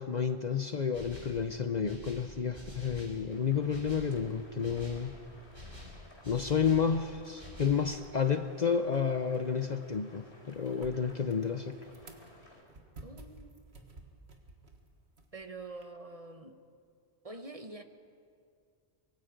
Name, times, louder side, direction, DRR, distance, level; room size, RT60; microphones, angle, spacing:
voice 1, 0.0-5.1 6.3-11.8, left 6 dB, 45° left, 8 dB, 0.7 m, -31 dB
sound 1, 0.9-1.4 1.8-3.2 3.7-4.1 4.6-5.1 5.5-6.9 7.4-7.8, left 1 dB, 50° right, 6.7 m, -47 dB
sound 2, 3.3-12.6, left 1 dB, 65° left, 4.5 m, -57 dB
sound 3, 8.8-15.8, right 2 dB, 65° right, 2.0 m, -54 dB
voice 2, 13.0-13.6 15.3-16.6 17.2-17.8, right 2 dB, 35° right, 7 dB, 1.1 m, -45 dB
24.5 x 23.0 x 5.2 m, 2.3 s
omnidirectional pair, 1.2 m